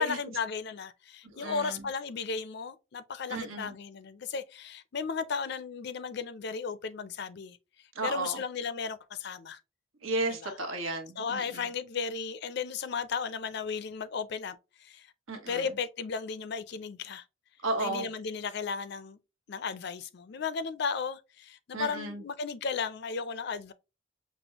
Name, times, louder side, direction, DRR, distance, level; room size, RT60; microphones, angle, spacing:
voice 1, 0.0-7.6 8.0-9.6 10.4-10.5 11.2-14.6 14.8-15.1 15.5-17.2 17.8-19.2 19.5-23.7, left 5 dB, 50° left, 0.4 m, -35 dB
voice 2, 1.3-1.9 3.3-3.7 7.9-8.4 10.0-11.7 15.3-15.8 17.6-18.1 21.7-22.2, right 2 dB, 80° right, 1.1 m, -34 dB
6.0 x 2.1 x 2.8 m
head